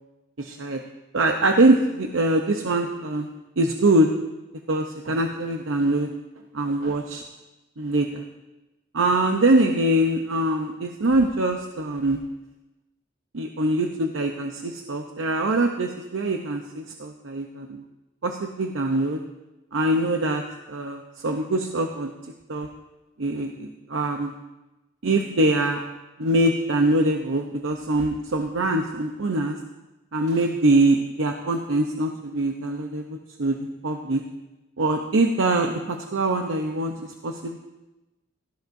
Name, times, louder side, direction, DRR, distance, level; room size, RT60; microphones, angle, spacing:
voice 1, 0.4-0.8 1.1-3.3 3.6-4.1 4.7-6.1 6.5-7.2 7.8-8.2 8.9-12.2 13.3-17.8 18.2-19.2 19.7-20.4 20.7-22.1 22.5-22.7 23.2-24.3 25.0-25.8 26.2-29.6 30.1-33.6 33.8-34.2 34.8-37.6, right 2 dB, 90° right, 3 dB, 0.8 m, -23 dB
17.0 x 13.5 x 2.6 m, 1.1 s
head